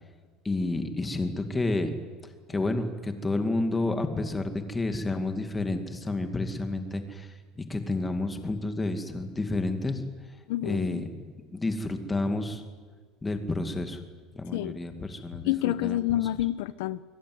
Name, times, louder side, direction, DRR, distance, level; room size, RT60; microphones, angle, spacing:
voice 1, 0.4-2.0 2.5-10.1 10.7-12.6 13.2-14.0 14.4-16.0, left 2 dB, 10° left, 2.1 m, -30 dB
voice 2, 10.5-11.0 14.5-14.8 15.4-17.0, left 14 dB, 85° left, 0.8 m, -28 dB
24.5 x 23.0 x 9.5 m
cardioid pair, 175°, 0 cm